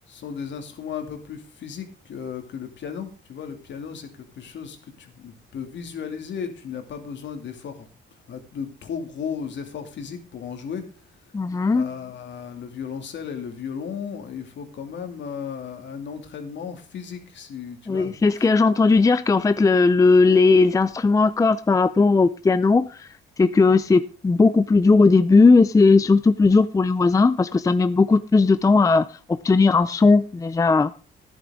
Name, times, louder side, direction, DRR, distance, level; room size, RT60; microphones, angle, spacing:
voice 1, 0.1-10.8 11.2-11.3 11.7-18.5, left 7 dB, 65° left, 2.6 m, -35 dB
voice 2, 11.3-11.8 17.9-23.1 23.4-29.1 29.4-30.9, left 3 dB, 15° left, 0.5 m, -17 dB
12.5 x 11.0 x 3.7 m
cardioid pair, 90°, 20 cm